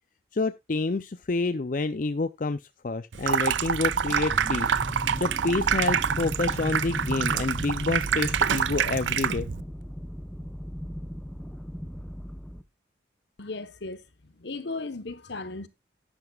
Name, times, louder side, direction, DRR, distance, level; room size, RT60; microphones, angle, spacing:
voice 1, 0.3-4.8 5.2-9.5, left 3 dB, 45° left, 0.5 m, -28 dB
Water tap faucet / Sink (filling or washing), 3.1-9.6, right 7 dB, 80° right, 0.5 m, -26 dB
sound 1, 3.5-12.6, equal, 5° left, 0.8 m, -37 dB
voice 2, 13.4-15.7, left 3 dB, 70° left, 1.1 m, -36 dB
11.0 x 11.0 x 2.4 m
head